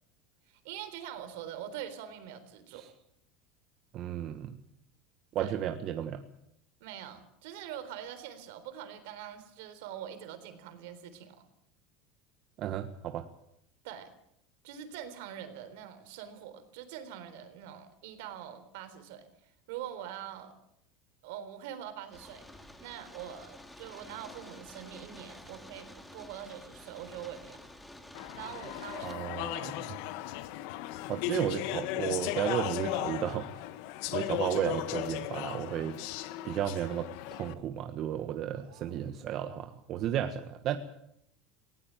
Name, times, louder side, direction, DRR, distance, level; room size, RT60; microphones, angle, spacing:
voice 1, 0.5-2.9 5.4-5.6 6.8-11.4 13.8-14.1 14.6-19.3 19.7-20.5 21.2-27.6 28.3-29.2 29.6-29.7 38.6-39.0, right 10 dB, 75° right, 10 dB, 3.7 m, -44 dB
voice 2, 3.9-4.5 5.3-6.2 12.6-13.2 29.0-29.9 31.1-33.5 34.1-36.0 36.4-40.8, right 10 dB, 45° right, 7 dB, 1.4 m, -33 dB
sound 1, 22.1-29.1, left 1 dB, 5° left, 2.2 m, -50 dB
Speech / Chatter, 28.1-37.5, left 15 dB, 65° left, 1.3 m, -36 dB
19.0 x 17.5 x 8.9 m, 0.75 s
supercardioid pair, 135°, 0 cm